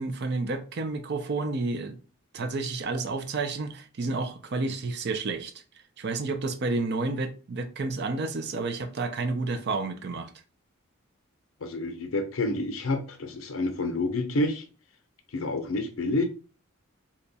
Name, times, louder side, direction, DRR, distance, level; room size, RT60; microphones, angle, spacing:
voice 1, 0.0-2.0 2.3-5.5 6.0-10.3, right 3 dB, 50° right, 0.5 m, -30 dB
voice 2, 11.6-14.6 15.3-16.3, left 2 dB, 70° left, 0.6 m, -28 dB
2.9 x 2.3 x 4.0 m
head